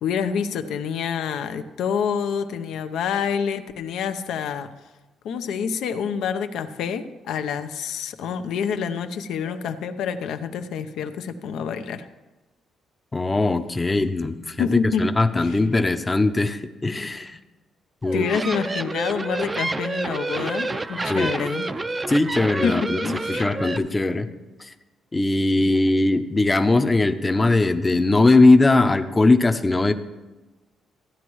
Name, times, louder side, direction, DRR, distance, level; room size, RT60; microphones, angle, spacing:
voice 1, 0.0-4.7 5.2-12.1 14.6-15.6 18.1-21.7 22.6-23.5, left 6 dB, 80° left, 9 dB, 0.7 m, -27 dB
voice 2, 13.1-14.7 15.0-17.4 18.0-18.2 21.1-21.3 22.1-23.0 23.3-24.3 24.6-24.7 25.1-29.9, left 2 dB, 20° left, 8 dB, 0.7 m, -20 dB
sound 1, 18.0-23.8, right 2 dB, 20° right, 0.5 m, -29 dB
15.0 x 9.6 x 3.1 m, 1.1 s
cardioid pair, 90°, 0 cm